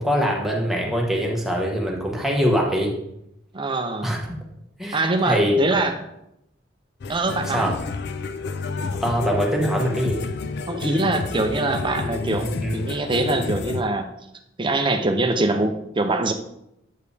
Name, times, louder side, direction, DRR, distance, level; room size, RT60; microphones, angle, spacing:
voice 1, 0.0-2.9 4.0-4.3 4.8-5.6 7.4-7.7 9.0-10.2 12.4-12.8, equal, ahead, -2 dB, 1.1 m, -23 dB
voice 2, 3.5-4.1 4.9-5.9 7.1-7.7 10.7-14.1 14.6-16.3, right 2 dB, 25° right, 6 dB, 0.6 m, -23 dB
sound 1, 7.0-13.8, left 3 dB, 60° left, 0.4 m, -30 dB
8.3 x 4.9 x 3.3 m, 0.80 s
head